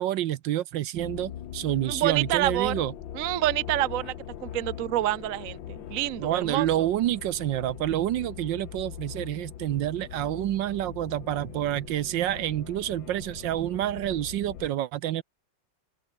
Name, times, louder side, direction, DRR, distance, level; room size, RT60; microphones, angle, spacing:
voice 1, 0.0-2.9 6.2-15.2, right 13 dB, 75° right, 1.4 m, -28 dB
sound 1, 0.9-14.7, left 10 dB, 75° left, 1.9 m, -41 dB
voice 2, 1.8-2.7 3.1-4.2 4.4-6.9, right 14 dB, 55° right, 1.0 m, -27 dB
open air
omnidirectional pair, 2.1 m